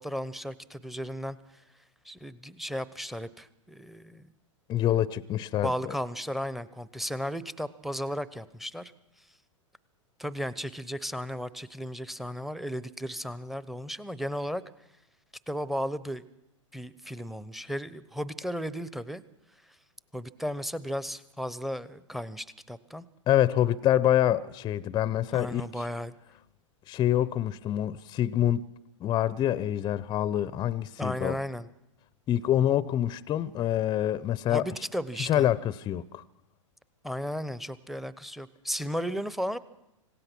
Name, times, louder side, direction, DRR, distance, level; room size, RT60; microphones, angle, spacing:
voice 1, 0.0-1.4 2.0-4.3 5.6-8.9 10.2-14.6 15.5-16.2 16.7-19.2 20.1-23.0 25.3-26.1 31.0-31.7 34.5-35.5 37.0-39.6, equal, ahead, 0.8 m, -35 dB
voice 2, 4.7-5.7 23.3-25.6 26.9-28.7 29.0-31.4 32.3-34.6 35.2-36.2, left 12 dB, 25° left, 0.6 m, -26 dB
26.0 x 17.0 x 6.1 m
hypercardioid pair, 105°, 16 cm